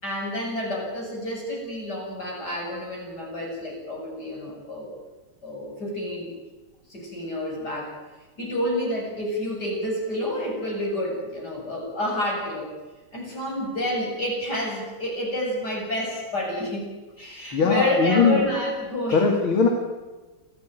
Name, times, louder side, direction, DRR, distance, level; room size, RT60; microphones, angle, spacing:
voice 1, 0.0-4.9 5.4-6.3 6.9-7.9 8.4-12.7 13.1-19.4, left 1 dB, 45° left, -1 dB, 8.7 m, -29 dB
voice 2, 17.5-18.4 19.1-19.7, left 5 dB, 70° left, 3 dB, 3.3 m, -20 dB
27.5 x 16.5 x 9.3 m, 1.2 s
omnidirectional pair, 2.4 m